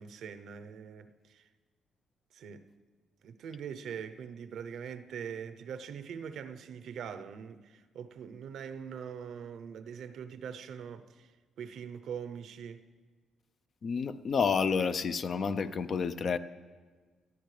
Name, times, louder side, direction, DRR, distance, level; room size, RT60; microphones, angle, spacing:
voice 1, 0.0-1.5 2.3-2.7 3.2-12.9, right 7 dB, 70° right, 0.7 m, -43 dB
voice 2, 13.8-16.4, left 5 dB, 50° left, 0.5 m, -29 dB
20.5 x 13.0 x 3.3 m
cardioid pair, 90°, 0 cm